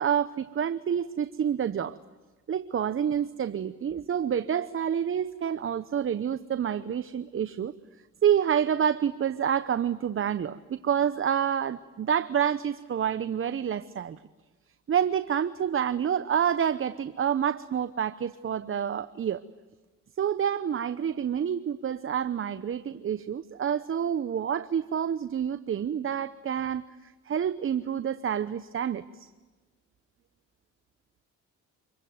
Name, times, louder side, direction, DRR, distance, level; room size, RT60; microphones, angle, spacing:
voice 1, 0.0-2.0 2.5-7.7 8.2-14.2 14.9-19.4 20.2-26.8 27.3-29.3, right 8 dB, 45° right, 13 dB, 0.9 m, -28 dB
27.0 x 23.0 x 9.4 m, 1.3 s
cardioid pair, 90°, 30 cm